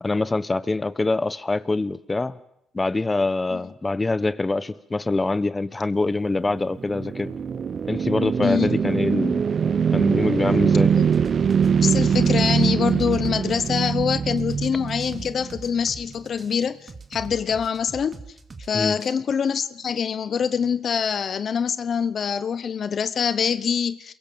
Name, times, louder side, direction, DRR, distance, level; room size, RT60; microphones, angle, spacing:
voice 1, 0.0-2.4 2.7-7.3 7.8-9.4 9.9-10.9 18.7-18.9, left 3 dB, 20° left, 15 dB, 1.2 m, -24 dB
sound 1, 6.4-15.7, right 7 dB, 50° right, 0.9 m, -22 dB
voice 2, 8.4-8.7 10.9-11.1 11.8-18.2 18.7-24.1, left 7 dB, 55° left, 14 dB, 0.9 m, -25 dB
sound 2, 11.1-19.1, right 4 dB, 35° right, 2.5 m, -41 dB
29.5 x 22.0 x 7.0 m, 0.77 s
cardioid pair, 90°, 0 cm